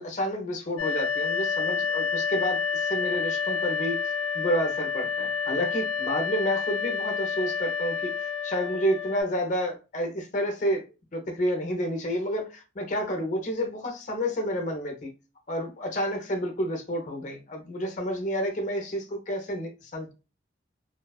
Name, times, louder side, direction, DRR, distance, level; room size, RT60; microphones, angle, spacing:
voice 1, 0.0-10.8 11.1-15.1 15.5-20.1, equal, 40° left, 0.6 m, -30 dB
sound 1, 0.8-9.2, left 6 dB, 90° left, 0.3 m, -29 dB
2.5 x 2.2 x 2.3 m
head